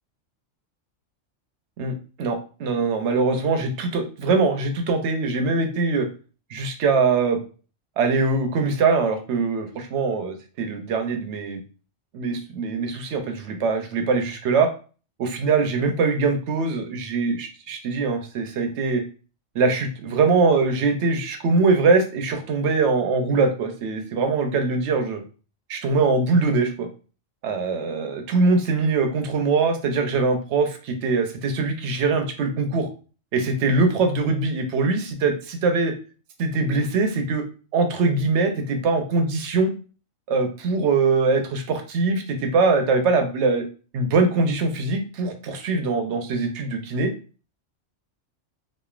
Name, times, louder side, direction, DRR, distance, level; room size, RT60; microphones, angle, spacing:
voice 1, 1.8-6.1 6.5-7.4 8.0-11.6 12.1-14.7 15.2-19.0 19.5-25.2 25.7-26.9 27.4-32.9 33.3-35.9 36.4-37.4 37.7-39.7 40.3-43.6 43.9-47.1, right 4 dB, 70° right, 5 dB, 0.8 m, -22 dB
3.0 x 2.4 x 2.4 m, 0.37 s
omnidirectional pair, 1.3 m